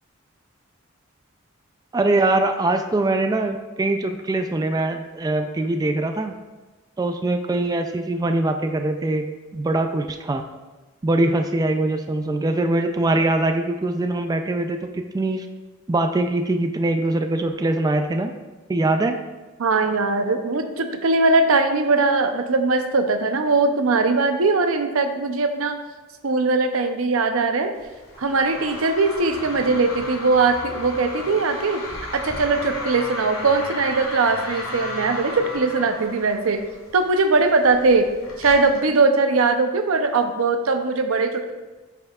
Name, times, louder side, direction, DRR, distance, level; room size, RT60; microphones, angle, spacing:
voice 1, 1.9-6.3 7.0-9.3 9.5-10.4 11.0-15.5 15.9-18.3 18.7-19.2, right 2 dB, 20° right, 6 dB, 0.3 m, -22 dB
voice 2, 19.6-25.8 26.2-27.7 28.2-31.8 32.1-36.7 36.9-38.1 38.4-41.5, right 3 dB, 85° right, 7 dB, 0.6 m, -20 dB
sound 1, 27.7-38.8, left 2 dB, 85° left, 2.1 m, -35 dB
8.9 x 5.4 x 2.4 m, 1.2 s
head